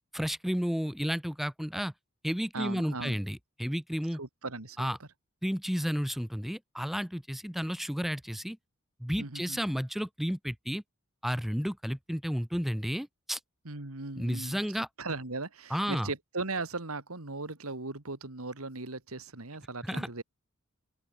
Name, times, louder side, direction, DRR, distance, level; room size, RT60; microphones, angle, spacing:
voice 1, 0.1-1.9 2.2-4.2 4.8-5.0 5.4-8.6 9.0-10.8 11.2-13.4 14.2-14.9 15.7-16.1 19.9-20.1, equal, ahead, 0.7 m, -32 dB
voice 2, 2.5-3.2 4.1-5.1 9.2-9.6 13.6-20.2, right 3 dB, 75° right, 2.5 m, -38 dB
open air
head